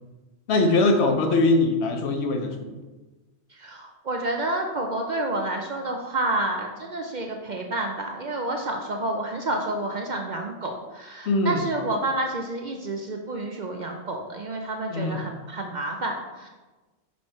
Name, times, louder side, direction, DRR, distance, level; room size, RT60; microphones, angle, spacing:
voice 1, 0.5-2.7 11.3-11.6 14.9-15.2, left 2 dB, 70° left, 5 dB, 1.0 m, -22 dB
voice 2, 3.5-16.5, right 2 dB, 50° right, 2 dB, 0.6 m, -29 dB
5.7 x 4.6 x 4.2 m, 1.2 s
omnidirectional pair, 1.2 m